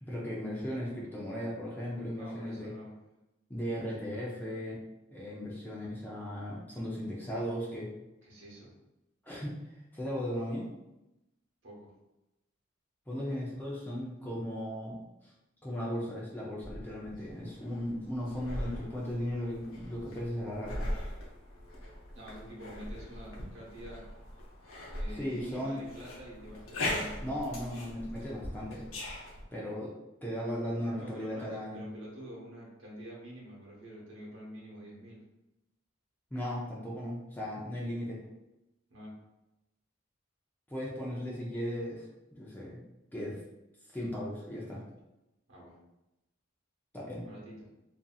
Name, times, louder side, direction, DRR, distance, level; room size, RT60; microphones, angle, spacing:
voice 1, 0.0-2.7 3.5-4.8 5.1-7.9 9.2-10.7 13.1-15.3 15.6-20.9 25.1-25.8 27.2-28.8 29.5-30.0 30.2-31.8 36.3-38.2 40.7-42.8 43.1-43.4 43.8-44.8 46.9-47.2, equal, 10° left, -5 dB, 0.4 m, -37 dB
voice 2, 2.2-2.9 3.7-3.9 8.2-8.7 11.6-11.9 22.1-24.0 24.9-27.4 31.0-35.2 38.9-39.2 45.5-45.8 47.2-47.7, equal, 65° right, -5 dB, 1.0 m, -47 dB
sound 1, 16.6-29.4, left 1 dB, 90° left, 0.7 m, -40 dB
2.7 x 2.6 x 2.3 m, 0.94 s
head